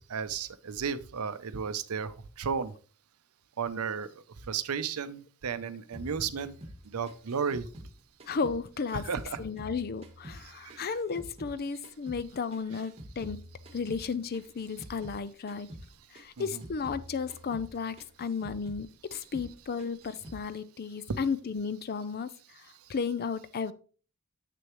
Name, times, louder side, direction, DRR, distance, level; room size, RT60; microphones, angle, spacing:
voice 1, 0.1-2.7 3.6-6.6 6.8-7.7 8.9-9.4 10.4-10.9 16.4-16.6 21.1-21.2 22.7-22.9, right 6 dB, 75° right, 0.6 m, -34 dB
sound 1, 5.9-8.6 8.9-11.6 11.8-15.2 15.5-15.9 16.1-18.9 19.1-19.5 19.8-20.4, equal, 30° right, 1.2 m, -47 dB
voice 2, 8.3-9.1 9.4-13.4 13.7-15.7 16.1-23.7, left 5 dB, 45° left, 0.5 m, -34 dB
7.7 x 6.5 x 3.0 m
head